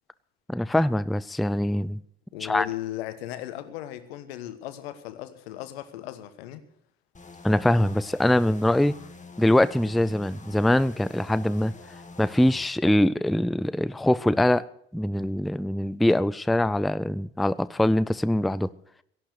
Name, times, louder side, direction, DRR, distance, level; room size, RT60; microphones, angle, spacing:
voice 1, 0.5-2.0 2.4-2.7 7.4-8.9 9.4-11.7 12.2-14.6 14.9-18.7, left 1 dB, ahead, 17 dB, 0.5 m, -23 dB
voice 2, 2.3-6.6, left 13 dB, 75° left, 11 dB, 1.3 m, -36 dB
sound 1, 7.1-12.7, left 4 dB, 25° left, 2.1 m, -46 dB
16.0 x 11.5 x 6.6 m, 0.70 s
figure-of-eight pair, 50°, 31 cm